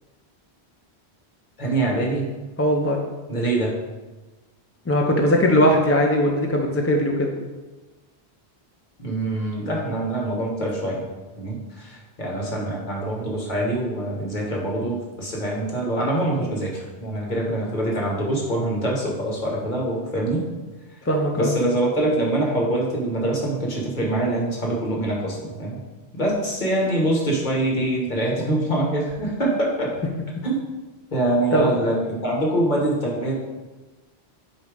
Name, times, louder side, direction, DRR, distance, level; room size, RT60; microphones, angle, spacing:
voice 1, 1.6-2.2 3.3-3.8 9.0-11.1 11.4-20.4 21.3-25.8 26.1-29.9 30.4-30.6 31.1-33.3, right 1 dB, 45° left, -2 dB, 1.4 m, -24 dB
voice 2, 2.6-3.0 4.9-7.3 21.1-21.5 31.5-31.7, equal, 20° left, 1 dB, 0.4 m, -19 dB
8.1 x 2.8 x 4.9 m, 1.2 s
omnidirectional pair, 1.1 m